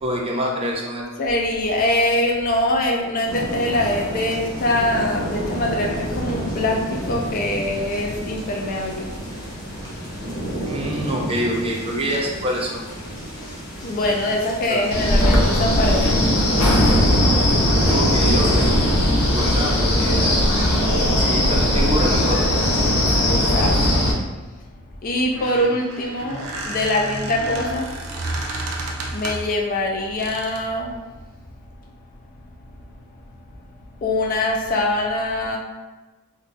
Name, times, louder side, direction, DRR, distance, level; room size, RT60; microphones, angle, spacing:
voice 1, 0.0-1.0 10.6-12.9 14.7-15.1 17.9-18.8 19.3-20.3 21.2-22.4 25.5-25.7, equal, 25° right, -1 dB, 0.5 m, -26 dB
voice 2, 1.2-9.1 13.8-16.4 23.2-24.0 25.0-27.9 29.1-31.0 34.0-35.6, left 1 dB, 40° left, 0 dB, 0.3 m, -23 dB
sound 1, 3.3-22.4, equal, 20° left, 0.7 m, -31 dB
Wind, 14.9-24.1, left 1 dB, 85° left, 0.7 m, -18 dB
Squeak, 25.2-29.6 30.2-30.7, right 2 dB, 75° right, 0.5 m, -31 dB
2.5 x 2.2 x 3.9 m, 1.2 s
head